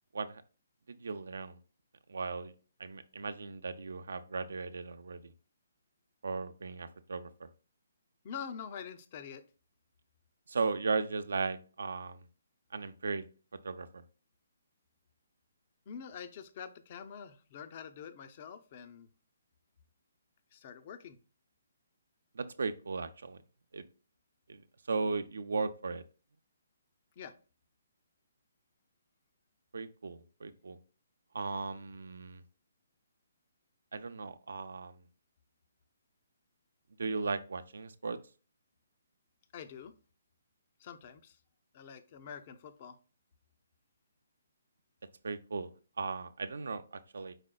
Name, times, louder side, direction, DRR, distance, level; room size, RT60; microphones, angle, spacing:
voice 1, 0.9-1.6 2.1-2.5 2.8-5.3 6.2-7.5 10.5-12.2 12.7-13.2 13.6-14.0 22.3-23.4 23.7-23.8 24.5-26.0 29.7-30.8 31.3-32.4 33.9-35.0 37.0-38.2 45.2-45.7 46.0-47.3, right 4 dB, 80° right, 11 dB, 0.4 m, -36 dB
voice 2, 8.2-9.4 15.9-19.1 20.5-21.2 27.2-27.3 39.5-39.9 40.8-41.4 41.7-43.0, left 7 dB, 40° left, 10 dB, 0.5 m, -46 dB
5.0 x 4.0 x 2.2 m, 0.36 s
hypercardioid pair, 155°, 0 cm